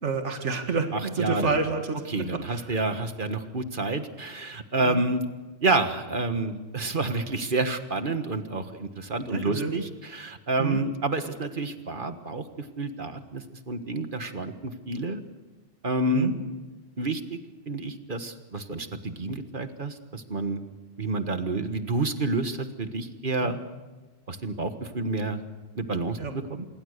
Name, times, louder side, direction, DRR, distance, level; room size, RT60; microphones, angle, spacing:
voice 1, 0.0-2.0 2.3-2.7 4.8-5.0 9.3-9.7 10.6-10.8 16.1-16.3 23.4-23.5 26.2-26.3, right 4 dB, 80° right, 5 dB, 2.2 m, -29 dB
voice 2, 0.9-1.6 2.1-5.2 5.6-15.2 15.8-16.3 17.0-17.4 17.7-20.6 21.0-23.6 24.3-25.4 25.8-26.7, right 2 dB, 45° right, 8 dB, 1.7 m, -29 dB
26.5 x 22.5 x 6.7 m, 1.2 s
omnidirectional pair, 1.2 m